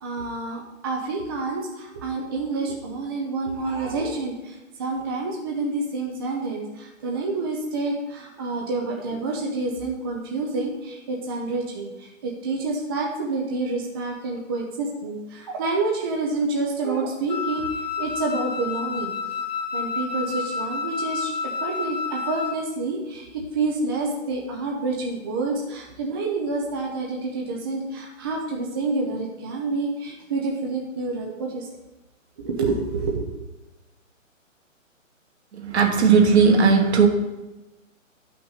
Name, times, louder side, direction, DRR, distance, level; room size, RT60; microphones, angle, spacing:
voice 1, 0.0-17.7 18.0-19.1 19.7-31.7 32.4-33.3, right 3 dB, 20° right, -1 dB, 0.5 m, -28 dB
Wind instrument woodwind instrument, 17.3-22.6, left 5 dB, 35° left, 0.6 m, -30 dB
voice 2, 35.5-37.1, right 5 dB, 55° right, 3 dB, 1.5 m, -17 dB
10.5 x 5.8 x 4.0 m, 1.0 s
hypercardioid pair, 145°, 39 cm